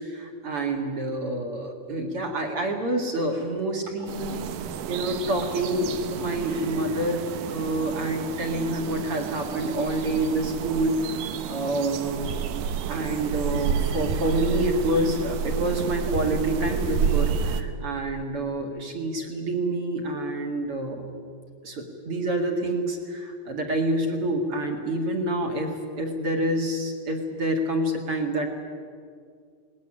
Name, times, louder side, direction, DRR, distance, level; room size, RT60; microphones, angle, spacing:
voice 1, 0.0-4.5 4.9-12.3 12.5-21.0 21.6-28.5, right 1 dB, 45° right, 3 dB, 2.3 m, -27 dB
sound 1, 4.1-17.6, right 7 dB, 70° right, 2.6 m, -30 dB
19.5 x 19.5 x 10.0 m, 2.2 s
omnidirectional pair, 4.7 m